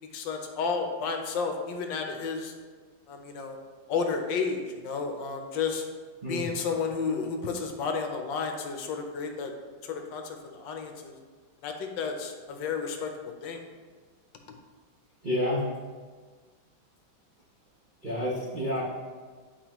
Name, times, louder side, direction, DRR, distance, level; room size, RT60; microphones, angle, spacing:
voice 1, 0.0-2.5 3.1-3.6 3.9-5.8 6.3-9.5 9.8-11.2 11.6-13.1 13.4-13.6, left 5 dB, 75° left, 4 dB, 1.3 m, -32 dB
voice 2, 15.2-15.7 18.0-18.8, left 1 dB, 50° right, -8 dB, 0.6 m, -29 dB
8.8 x 4.7 x 3.0 m, 1.5 s
omnidirectional pair, 2.1 m